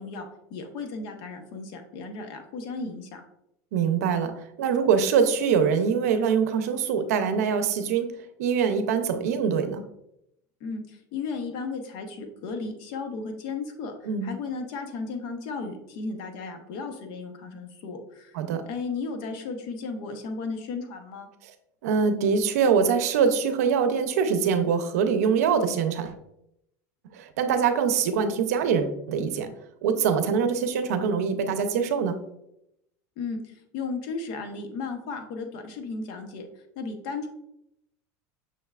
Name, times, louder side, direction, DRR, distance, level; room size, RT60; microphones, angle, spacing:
voice 1, 0.0-3.2 10.6-18.4 18.7-21.3 33.2-36.5 36.8-37.3, left 4 dB, 55° left, 5 dB, 0.8 m, -35 dB
voice 2, 3.7-9.8 14.1-14.4 18.3-18.6 21.8-26.1 27.1-29.5 29.8-32.2, right 6 dB, 85° right, 9 dB, 0.6 m, -24 dB
6.2 x 3.2 x 2.3 m, 0.81 s
supercardioid pair, 140°, 8 cm